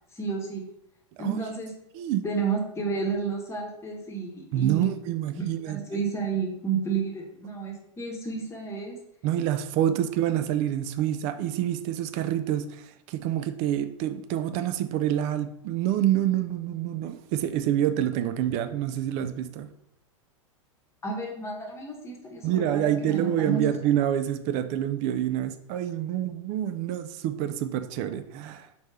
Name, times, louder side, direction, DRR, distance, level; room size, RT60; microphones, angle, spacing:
voice 1, 0.1-0.6 1.2-1.7 2.2-4.9 5.4-9.0 21.0-23.6, right 5 dB, 15° left, 1 dB, 1.1 m, -31 dB
voice 2, 4.5-6.0 9.2-19.7 22.4-28.7, right 11 dB, 45° right, 10 dB, 0.4 m, -27 dB
4.3 x 3.2 x 3.3 m, 0.76 s
hypercardioid pair, 95°, 16 cm